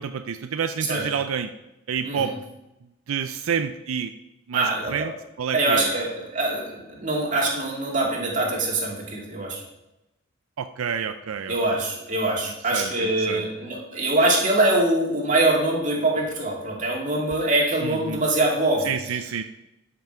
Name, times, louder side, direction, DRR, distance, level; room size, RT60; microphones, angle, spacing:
voice 1, 0.0-1.5 1.9-2.4 3.1-4.1 4.5-5.1 5.4-5.9 10.6-11.8 12.7-13.5 17.8-18.2 18.8-19.4, right 7 dB, 85° right, 9 dB, 0.4 m, -29 dB
voice 2, 4.5-5.1 5.5-9.6 11.5-18.9, right 2 dB, 35° right, -2 dB, 2.2 m, -23 dB
12.0 x 6.0 x 4.5 m, 0.94 s
head